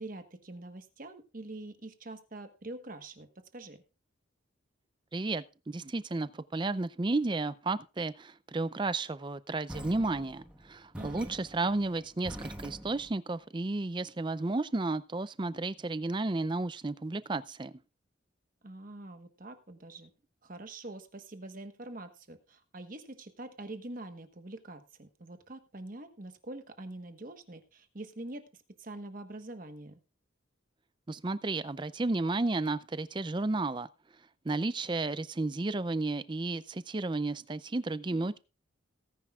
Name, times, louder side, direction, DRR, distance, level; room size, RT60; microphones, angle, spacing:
voice 1, 0.0-3.8 10.9-11.4 18.6-20.1 20.4-28.4 28.8-30.0, right 2 dB, 45° right, 1.2 m, -45 dB
voice 2, 5.1-17.7 31.1-33.9 34.4-38.4, right 2 dB, 25° right, 0.4 m, -32 dB
morley knocks echo, 9.7-13.2, equal, 5° right, 1.3 m, -45 dB
18.0 x 10.0 x 2.4 m
head